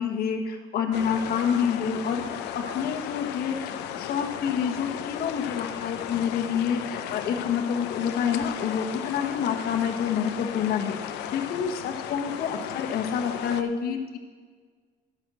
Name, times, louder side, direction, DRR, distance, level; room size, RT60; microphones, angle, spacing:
voice 1, 0.0-14.2, left 7 dB, 65° left, 3 dB, 1.3 m, -28 dB
sound 1, 0.9-13.6, left 10 dB, 90° left, 0.6 m, -35 dB
11.0 x 6.2 x 6.8 m, 1.5 s
cardioid pair, 110°, 17 cm